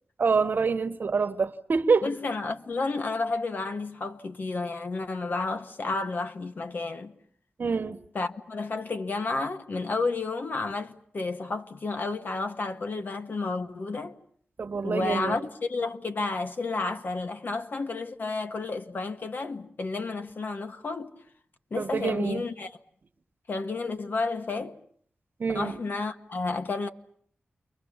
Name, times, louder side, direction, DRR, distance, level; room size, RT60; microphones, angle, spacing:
voice 1, 0.2-2.1 7.6-8.0 14.6-15.4 21.8-22.4 25.4-25.8, right 5 dB, 60° right, 1.2 m, -26 dB
voice 2, 2.0-7.1 8.1-14.2 14.8-21.2 21.7-22.7 23.5-24.8 25.5-26.9, left 3 dB, 55° left, 1.6 m, -31 dB
30.0 x 23.5 x 7.3 m
wide cardioid pair, 125°, 4 cm